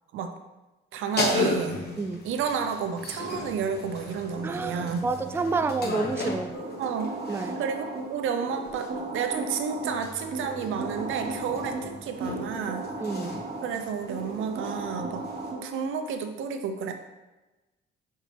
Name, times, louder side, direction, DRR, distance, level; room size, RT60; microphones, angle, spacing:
voice 1, 0.9-1.8 2.2-5.1 6.8-7.1 7.6-12.8 13.6-15.3 15.6-16.9, right 6 dB, 85° right, 6 dB, 0.7 m, -31 dB
sound 1, 1.1-7.7 8.7-15.5, left 2 dB, 55° left, 1.2 m, -35 dB
voice 2, 4.4-6.5 7.3-7.6 13.0-13.4, right 4 dB, 10° right, 9 dB, 0.3 m, -29 dB
sound 2, 6.5-16.0, right 2 dB, 45° right, 1.3 m, -36 dB
6.4 x 4.5 x 3.3 m, 1.1 s
cardioid pair, 90°, 20 cm